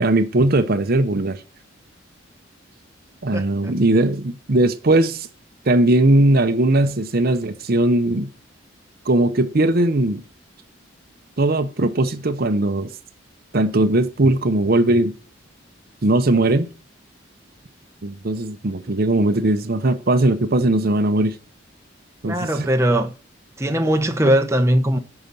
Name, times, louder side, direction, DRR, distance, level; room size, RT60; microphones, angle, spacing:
voice 1, 0.0-1.4 3.2-5.3 5.7-8.3 9.1-10.2 11.4-12.9 13.5-15.1 16.0-16.7 18.0-21.4 22.2-22.7, right 2 dB, 50° right, 0.8 m, -19 dB
voice 2, 3.3-3.7 22.2-23.1 23.6-25.0, right 1 dB, 15° right, 0.9 m, -20 dB
9.2 x 5.9 x 6.8 m
head